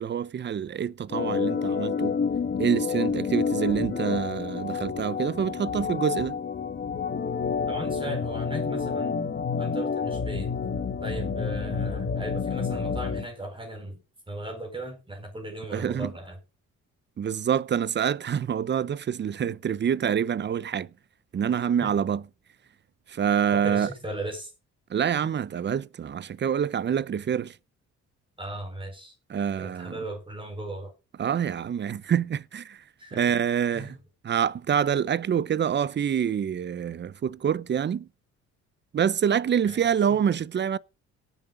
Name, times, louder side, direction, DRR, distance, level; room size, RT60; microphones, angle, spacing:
voice 1, 0.0-2.2 2.6-6.4 15.7-16.1 17.2-20.9 21.3-22.2 23.1-23.9 24.9-27.6 29.3-29.9 31.2-32.8 33.1-34.0 34.2-38.1 38.9-40.8, right 8 dB, 35° right, 0.6 m, -26 dB
Organ, 1.1-13.3, left 5 dB, 35° left, 1.4 m, -29 dB
voice 2, 7.7-9.2 9.6-10.5 11.0-14.0 14.3-16.4 21.8-22.1 23.5-24.5 28.4-29.1 29.6-30.9 33.0-33.2 33.7-34.0 39.6-40.2, right 1 dB, 15° right, 4.4 m, -37 dB
18.0 x 7.1 x 3.8 m
cardioid pair, 90°, 30 cm